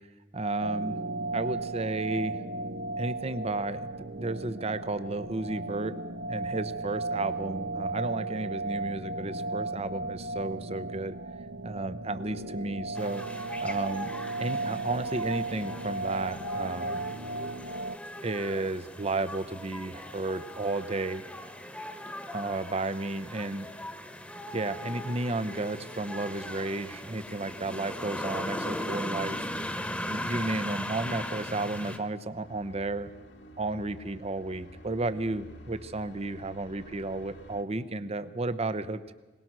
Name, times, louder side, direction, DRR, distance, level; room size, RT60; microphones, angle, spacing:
voice 1, 0.3-1.0 1.3-2.4 3.0-5.9 6.3-11.2 11.6-14.1 14.4-17.2 18.2-21.2 22.3-23.7 24.5-29.4 30.0-33.1 33.6-39.1, right 2 dB, 35° right, 13 dB, 0.8 m, -33 dB
sound 1, 0.6-18.0, right 2 dB, 60° right, 0.8 m, -35 dB
sound 2, 12.9-32.0, left 1 dB, 5° left, 1.4 m, -39 dB
sound 3, 32.4-37.6, left 1 dB, 65° left, 2.0 m, -50 dB
22.0 x 19.5 x 6.2 m, 1.2 s
head